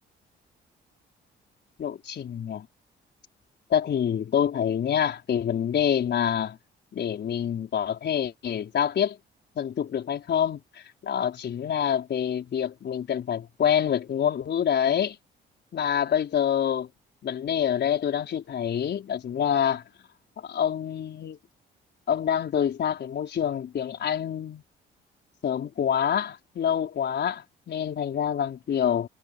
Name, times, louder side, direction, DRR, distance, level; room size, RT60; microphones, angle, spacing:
voice 1, 1.8-2.7 3.7-6.6 6.9-9.2 9.6-15.2 15.7-16.9 17.2-19.8 20.4-21.4 22.1-24.6 25.4-29.1, left 9 dB, 60° left, 4.8 m, -26 dB
cardioid pair, 90°, 20 cm